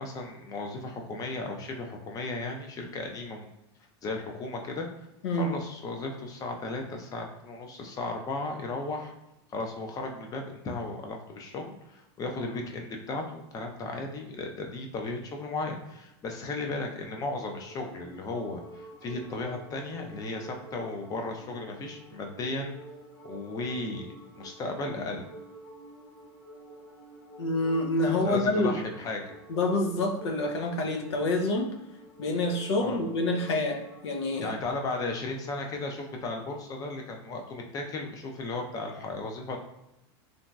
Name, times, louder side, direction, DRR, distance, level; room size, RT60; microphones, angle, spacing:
voice 1, 0.0-3.5 4.0-4.9 5.3-9.1 9.5-22.7 23.2-25.2 28.1-29.4 32.8-33.0 34.4-39.6, left 2 dB, 25° left, 2 dB, 0.5 m, -35 dB
sound 1, 16.6-34.1, right 1 dB, 65° left, 1.2 m, -49 dB
voice 2, 27.4-28.7 29.5-31.8 32.2-34.5, left 2 dB, 85° left, 4 dB, 0.6 m, -27 dB
3.0 x 2.6 x 2.2 m, 0.88 s
supercardioid pair, 135°, 14 cm